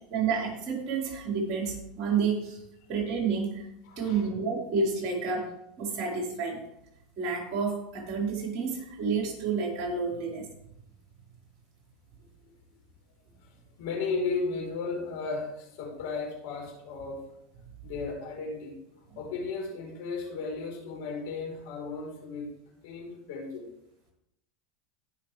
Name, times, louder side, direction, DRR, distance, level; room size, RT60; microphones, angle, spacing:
voice 1, 0.1-2.6 2.9-3.7 4.0-6.6 7.2-10.4, right 5 dB, 50° right, -1 dB, 4.7 m, -30 dB
voice 2, 3.8-4.3 12.2-12.3 13.8-17.2 17.8-18.7 19.2-23.7, left 4 dB, 70° left, 0 dB, 4.2 m, -35 dB
18.0 x 6.5 x 3.4 m, 0.83 s
hypercardioid pair, 95°, 0 cm